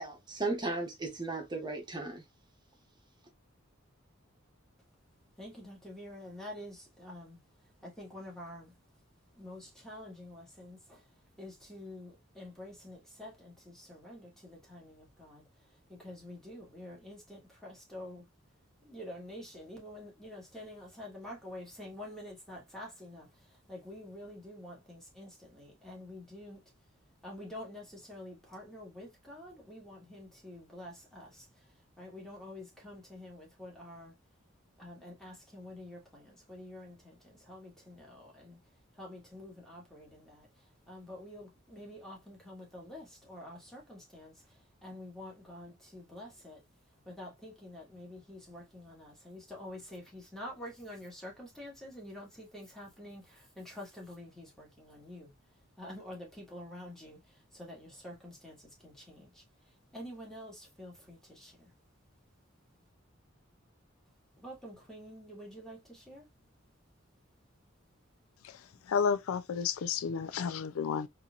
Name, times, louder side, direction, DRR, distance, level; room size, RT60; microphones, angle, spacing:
voice 1, 0.0-2.2, right 2 dB, 20° right, 1.0 m, -35 dB
voice 2, 5.4-7.4 7.8-8.7 9.4-11.1 11.4-15.5 15.9-18.3 18.8-26.6 27.2-31.7 32.0-34.2 34.8-38.6 38.9-46.6 47.0-55.3 55.8-61.7 64.4-66.2, left 1 dB, ahead, 1.5 m, -48 dB
voice 3, 68.9-71.1, left 6 dB, 80° left, 0.4 m, -31 dB
4.1 x 2.8 x 2.4 m
head